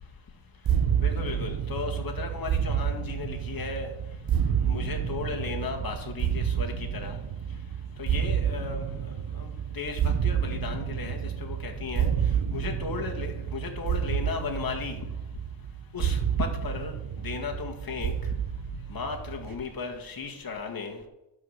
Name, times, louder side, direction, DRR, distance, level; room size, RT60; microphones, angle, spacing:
sound 1, 0.6-19.5, right 8 dB, 50° right, 0.9 m, -29 dB
voice 1, 1.0-3.9 4.7-7.2 8.0-12.1 12.5-15.0 15.9-16.9 17.2-18.1 18.9-21.0, left 4 dB, 50° left, 2 dB, 2.0 m, -35 dB
11.5 x 4.9 x 6.6 m, 0.93 s
wide cardioid pair, 125°, 45 cm